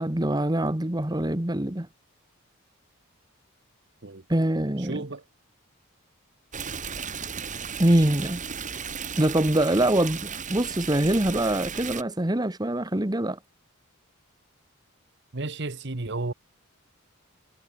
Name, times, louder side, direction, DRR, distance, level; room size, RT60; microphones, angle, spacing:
voice 1, 0.0-1.9 4.3-5.0 7.8-8.4 9.2-13.4, right 1 dB, 20° right, 1.3 m, -24 dB
voice 2, 4.8-5.2 15.3-16.3, right 2 dB, 55° right, 1.3 m, -32 dB
Stream, 6.5-12.0, right 6 dB, 35° right, 3.6 m, -35 dB
head